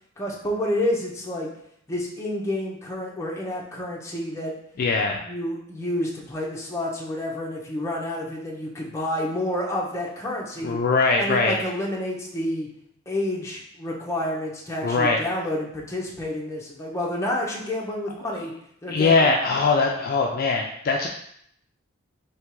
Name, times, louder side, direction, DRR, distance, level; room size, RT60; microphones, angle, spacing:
voice 1, 0.2-1.5 1.9-4.5 5.2-10.8 11.2-12.7 13.1-18.5 18.8-19.3, left 1 dB, 15° left, -3 dB, 0.7 m, -29 dB
voice 2, 4.8-5.2 10.6-11.6 14.8-15.2 18.9-21.1, left 4 dB, 45° left, 1 dB, 0.3 m, -21 dB
3.4 x 2.9 x 4.5 m, 0.72 s
head